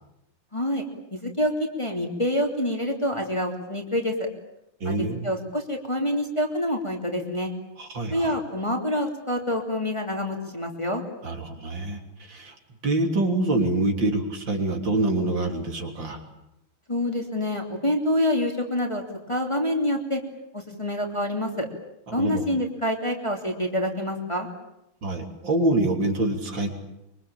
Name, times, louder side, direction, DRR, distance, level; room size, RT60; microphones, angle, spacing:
voice 1, 0.5-0.8 1.1-4.3 4.8-7.5 8.1-11.0 16.9-20.2 20.5-21.7 22.1-24.5, left 1 dB, 15° left, 2 dB, 3.0 m, -27 dB
voice 2, 4.8-5.3 7.8-8.4 11.2-12.0 12.3-12.5 12.8-16.2 22.1-22.5 25.0-26.7, right 2 dB, 60° right, 3 dB, 4.1 m, -25 dB
25.0 x 24.0 x 8.9 m, 0.85 s
omnidirectional pair, 2.3 m